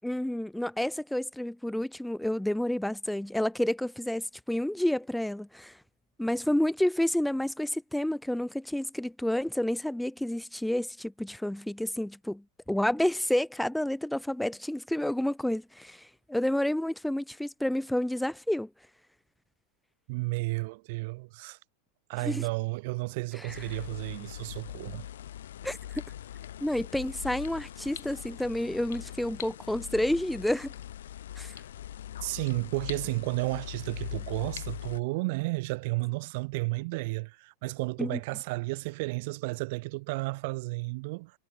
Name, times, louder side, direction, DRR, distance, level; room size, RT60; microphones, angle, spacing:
voice 1, 0.0-5.7 6.2-18.7 22.2-22.4 23.4-23.6 25.6-26.0 26.6-30.7 31.4-31.5 38.0-38.2, left 1 dB, ahead, 6.2 m, -30 dB
voice 2, 20.1-21.6 22.1-25.0 32.2-41.3, right 25 dB, 50° right, 3.5 m, -32 dB
sound 1, 23.5-35.0, left 11 dB, 60° left, 5.4 m, -41 dB
figure-of-eight pair, 90°, 0 cm